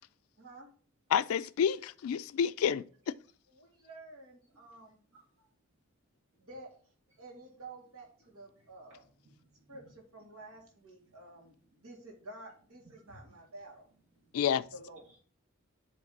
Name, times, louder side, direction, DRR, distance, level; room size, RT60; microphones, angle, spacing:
voice 1, 0.4-0.7 2.6-2.7 3.5-5.0 6.4-6.7 7.2-9.0 9.7-13.9 14.3-15.1, right 2 dB, 90° right, 2.0 m, -51 dB
voice 2, 1.1-2.8 14.3-14.6, left 8 dB, 90° left, 0.3 m, -29 dB
voice 3, 5.1-5.5 8.5-10.0 10.5-10.6 11.1-11.2 11.6-11.7 12.8-13.4 14.1-14.4 15.0-15.2, right 1 dB, 70° right, 1.9 m, -62 dB
8.0 x 3.2 x 5.2 m
head